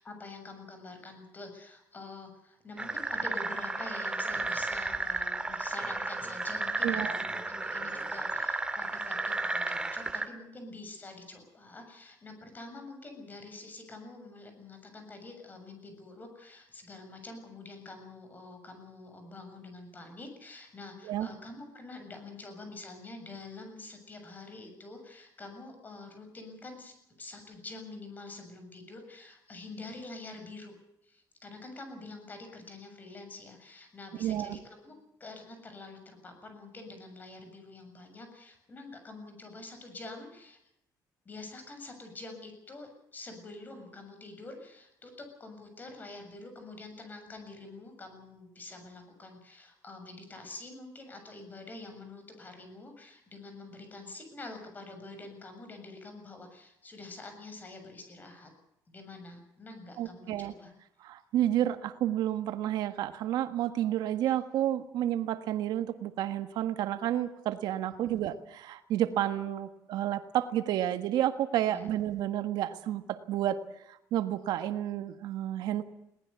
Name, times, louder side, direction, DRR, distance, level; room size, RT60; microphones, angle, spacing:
voice 1, 0.0-30.8 31.0-40.6 41.3-58.5 58.9-60.7 67.9-68.1 71.7-71.9, left 2 dB, 25° left, 6 dB, 7.2 m, -46 dB
sound 1, 2.8-10.3, right 2 dB, 15° right, 1.8 m, -33 dB
voice 2, 6.8-7.2 21.0-21.3 34.2-34.6 60.0-60.5 61.0-73.6 73.9-75.8, right 12 dB, 85° right, 10 dB, 1.6 m, -30 dB
22.0 x 19.0 x 8.3 m, 0.81 s
cardioid pair, 145°, 7 cm